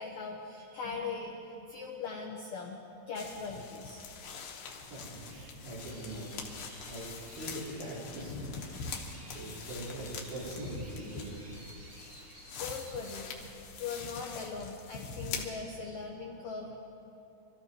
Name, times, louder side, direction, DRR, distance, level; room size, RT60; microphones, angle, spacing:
voice 1, 0.0-2.8 3.1-4.0 12.6-13.3 13.8-16.8, left 4 dB, 85° left, -1 dB, 1.6 m, -40 dB
sound 1, 3.2-15.4, left 5 dB, 70° left, 2.5 m, -44 dB
voice 2, 4.9-6.6 6.9-7.1 7.3-11.3 13.9-14.1, right 1 dB, 85° right, -8 dB, 6.7 m, -43 dB
sound 2, 5.3-11.7, left 1 dB, 65° right, 4.2 m, -56 dB
sound 3, 5.8-13.2, right 1 dB, 30° right, 3.0 m, -54 dB
26.5 x 14.0 x 3.0 m, 2.9 s
omnidirectional pair, 4.9 m